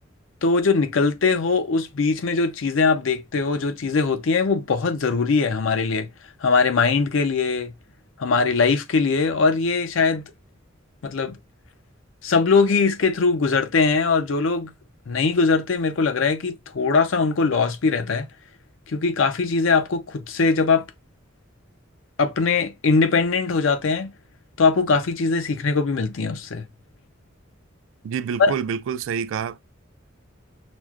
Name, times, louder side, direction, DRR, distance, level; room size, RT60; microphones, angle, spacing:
voice 1, 0.4-6.1 6.4-7.7 8.2-10.2 11.0-11.4 12.2-14.7 15.1-18.3 18.9-20.9 22.2-24.1 24.6-26.6 28.4-28.5, left 4 dB, 80° left, 0.5 m, -21 dB
voice 2, 28.0-29.6, right 7 dB, 70° right, 0.3 m, -27 dB
6.0 x 2.1 x 2.3 m
head